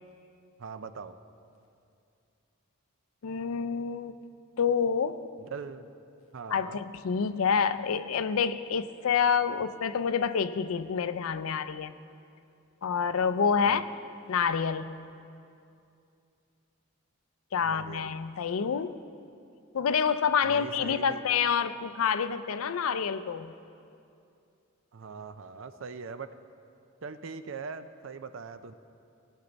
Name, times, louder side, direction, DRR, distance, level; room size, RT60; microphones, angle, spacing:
voice 1, 0.6-1.2 5.4-5.9 6.3-6.8 13.6-13.8 17.6-18.1 20.4-21.2 24.9-26.3 27.0-28.7, right 5 dB, 65° right, 11 dB, 0.5 m, -41 dB
voice 2, 3.2-4.2 4.6-5.2 6.5-11.9 12.8-13.8 14.3-15.0 17.5-19.0 19.7-23.5, left 6 dB, 80° left, 13 dB, 0.4 m, -28 dB
18.0 x 8.1 x 4.0 m, 2.6 s
head